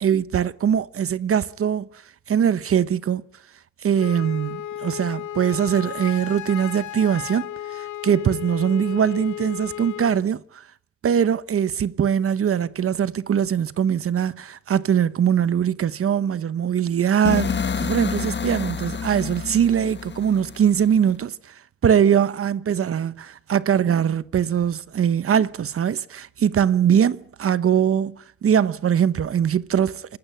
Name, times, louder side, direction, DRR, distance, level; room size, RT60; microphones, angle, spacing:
voice 1, 0.0-1.9 2.3-3.2 3.8-7.5 7.8-10.4 11.0-21.3 21.8-28.1 28.4-30.2, right 8 dB, 50° right, 1.0 m, -21 dB
Wind instrument woodwind instrument, 4.0-10.2, left 12 dB, 75° left, 1.1 m, -34 dB
sound 1, 17.3-21.2, left 6 dB, 35° left, 1.5 m, -29 dB
26.5 x 16.0 x 9.0 m
cardioid pair, 90°, 30 cm